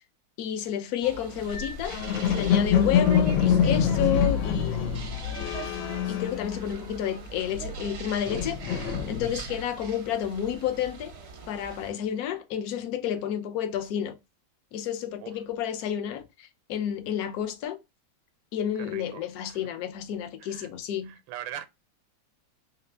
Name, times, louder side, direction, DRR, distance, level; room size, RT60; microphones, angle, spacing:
voice 1, 0.4-5.5 6.1-11.1 11.5-14.2 14.7-17.8 18.5-21.2, left 9 dB, 70° left, 0.9 m, -31 dB
sound 1, 1.0-11.9, right 5 dB, 60° right, 0.6 m, -42 dB
sound 2, 1.5-7.1 7.4-9.6, left 7 dB, 85° left, 1.4 m, -26 dB
voice 2, 18.9-19.6 20.4-20.7 21.0-21.7, right 11 dB, 85° right, 1.3 m, -41 dB
3.3 x 2.9 x 3.2 m
omnidirectional pair, 2.1 m